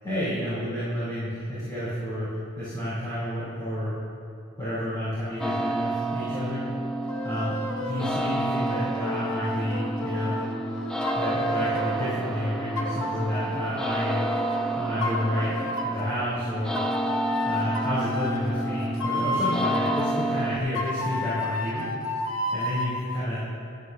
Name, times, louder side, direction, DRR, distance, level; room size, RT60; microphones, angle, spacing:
voice 1, 0.0-3.9 4.6-6.7 7.2-10.4 11.1-14.2 14.7-16.8 17.4-21.9 22.5-23.4, equal, 20° left, -13 dB, 3.1 m, -30 dB
sound 1, 5.4-20.6, right 2 dB, 5° left, 0.5 m, -30 dB
sound 2, 7.1-8.1 8.7-12.1 12.8-14.6 15.0-16.1 16.8-20.1 20.8-23.0, left 2 dB, 65° left, 1.1 m, -31 dB
14.5 x 12.0 x 2.7 m, 2.4 s
head